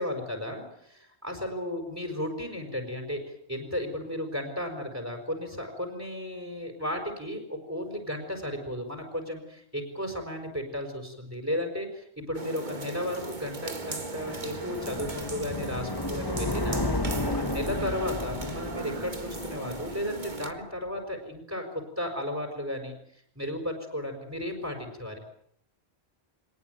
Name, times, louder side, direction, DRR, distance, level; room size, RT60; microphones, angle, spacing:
voice 1, 0.0-3.2 3.5-16.8 17.3-21.6 22.0-22.9 23.4-25.2, left 1 dB, 15° right, 3 dB, 5.3 m, -34 dB
sound 1, 12.3-20.5, right 3 dB, 45° right, 2.0 m, -38 dB
sound 2, 13.0-20.4, left 1 dB, 20° left, 1.7 m, -33 dB
24.5 x 19.0 x 9.3 m, 0.69 s
omnidirectional pair, 1.1 m